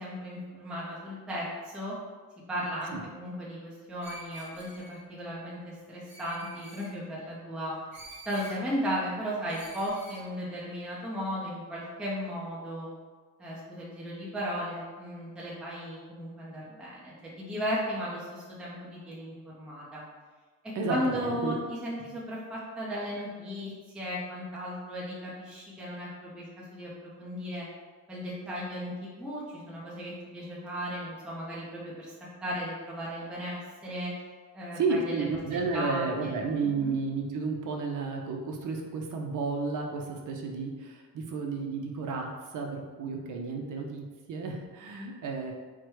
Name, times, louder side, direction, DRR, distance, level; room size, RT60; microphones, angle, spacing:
voice 1, 0.0-1.5 1.7-2.0 2.5-7.8 8.3-12.9 13.4-20.0 20.6-26.9 27.2-27.7 28.1-32.1 32.4-34.1 34.5-35.2 35.5-36.4 36.8-36.9, equal, ahead, -7 dB, 0.6 m, -36 dB
Screech, 4.0-5.0 6.1-6.9 7.9-8.6 9.5-10.2, right 1 dB, 30° right, 0.9 m, -47 dB
voice 2, 20.7-21.6 34.7-45.5, right 4 dB, 55° right, 2 dB, 0.7 m, -32 dB
4.7 x 2.2 x 4.6 m, 1.4 s
cardioid pair, 180°, 37 cm